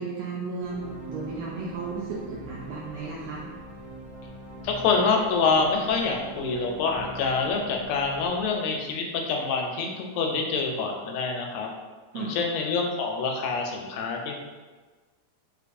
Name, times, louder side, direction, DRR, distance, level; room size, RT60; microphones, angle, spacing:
voice 1, 0.0-3.4 12.1-12.4, right 4 dB, 85° right, -4 dB, 1.5 m, -34 dB
sound 1, 0.6-9.1, right 1 dB, 55° right, 1.5 m, -43 dB
voice 2, 4.6-11.7 12.1-14.4, left 4 dB, 85° left, 1 dB, 2.0 m, -26 dB
4.9 x 2.3 x 2.5 m, 1.3 s
omnidirectional pair, 3.4 m